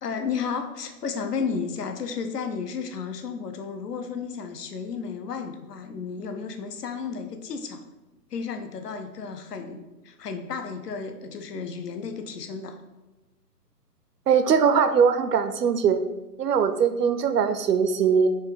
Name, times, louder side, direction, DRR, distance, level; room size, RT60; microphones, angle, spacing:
voice 1, 0.0-7.8 8.3-12.8, left 5 dB, 70° left, 6 dB, 0.8 m, -33 dB
voice 2, 14.3-16.0 16.4-18.3, right 6 dB, 75° right, 9 dB, 0.6 m, -21 dB
4.4 x 2.3 x 4.7 m, 1.0 s
hypercardioid pair, 160°, 49 cm